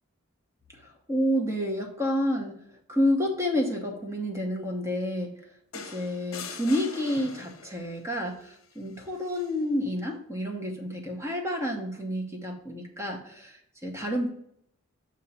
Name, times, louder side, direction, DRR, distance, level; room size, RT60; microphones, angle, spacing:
voice 1, 1.1-2.6 2.9-5.3 5.7-14.3, equal, 15° right, 2 dB, 1.0 m, -29 dB
sound 1, 5.7-7.9 9.3-9.5, left 5 dB, 70° left, 0.7 m, -42 dB
6.4 x 3.0 x 5.5 m, 0.72 s
head